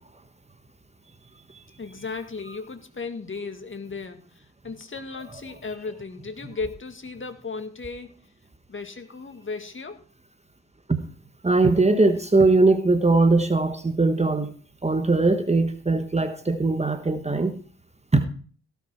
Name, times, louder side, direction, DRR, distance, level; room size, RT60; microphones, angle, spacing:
voice 1, 1.8-8.1 8.7-10.0, left 4 dB, 35° left, 7 dB, 2.0 m, -35 dB
voice 2, 11.4-14.5 14.8-17.6 18.1-18.2, right 3 dB, 20° right, 9 dB, 1.3 m, -20 dB
17.5 x 5.8 x 4.6 m, 0.42 s
hypercardioid pair, 45°, 36 cm